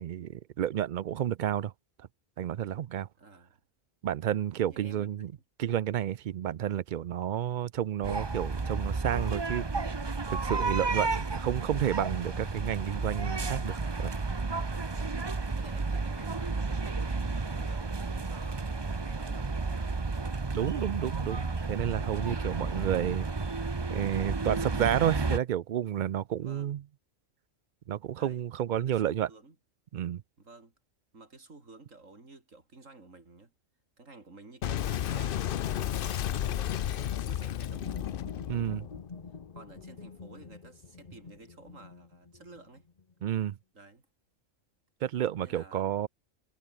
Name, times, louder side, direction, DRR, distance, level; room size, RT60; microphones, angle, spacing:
voice 1, 0.0-1.7 2.4-3.1 4.0-5.3 5.6-9.6 10.3-14.1 20.5-23.2 23.9-26.8 27.9-29.3 29.9-30.2 38.5-38.8 43.2-43.5 45.0-46.1, right 11 dB, 65° right, 0.4 m, -31 dB
voice 2, 3.2-3.5 4.6-5.4 10.8-11.2 14.9-15.2 15.5-20.0 22.5-23.0 26.4-26.8 27.8-28.4 28.7-29.6 30.4-30.7 31.1-33.5 34.0-38.2 39.5-42.9 43.7-44.1 45.3-45.8, right 3 dB, 90° right, 4.2 m, -53 dB
sound 1, 8.0-25.4, right 3 dB, 25° right, 0.8 m, -32 dB
Boom, 34.6-39.8, left 10 dB, 55° left, 0.7 m, -33 dB
sound 2, 37.6-43.3, left 4 dB, 35° left, 1.2 m, -47 dB
omnidirectional pair, 1.3 m